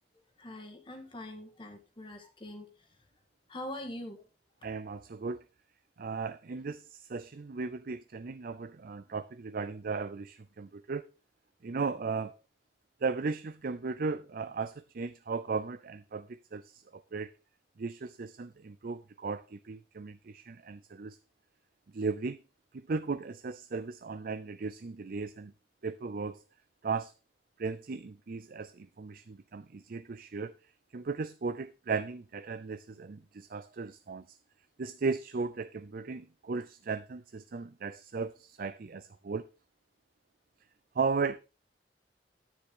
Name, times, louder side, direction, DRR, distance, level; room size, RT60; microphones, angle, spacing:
voice 1, 0.4-2.7 3.5-4.2, left 1 dB, 30° left, 1.7 m, -43 dB
voice 2, 4.6-5.4 6.0-11.0 11.6-12.4 13.0-17.3 17.8-21.2 21.9-22.4 22.7-25.5 25.8-26.4 26.8-27.1 27.6-34.4 34.8-39.5 40.9-41.4, right 4 dB, 55° right, 0.5 m, -36 dB
10.0 x 9.5 x 3.7 m
head